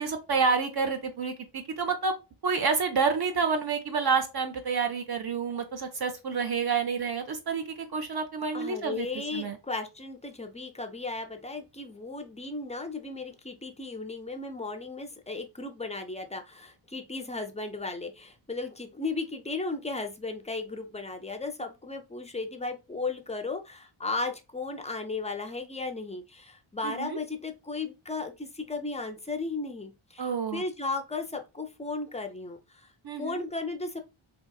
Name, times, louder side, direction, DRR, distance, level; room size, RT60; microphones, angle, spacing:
voice 1, 0.0-2.2 2.4-9.1 9.3-9.6 26.8-27.2 30.2-30.6 33.0-33.4, right 5 dB, 50° right, 0.6 m, -29 dB
voice 2, 8.5-32.9 33.2-34.0, left 3 dB, 15° left, 0.4 m, -35 dB
3.7 x 2.8 x 2.3 m
wide cardioid pair, 145°, 50 cm